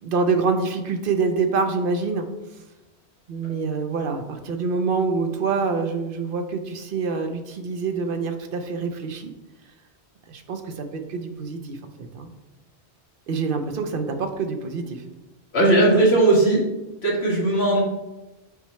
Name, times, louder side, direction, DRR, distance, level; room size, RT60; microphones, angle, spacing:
voice 1, 0.0-2.3 3.3-9.3 10.3-11.8 12.1-12.3 13.3-15.0, right 4 dB, 55° right, 6 dB, 0.8 m, -26 dB
voice 2, 15.5-16.6 17.0-17.8, right 2 dB, 65° left, -5 dB, 2.1 m, -17 dB
7.0 x 4.4 x 3.1 m, 1.0 s
omnidirectional pair, 1.2 m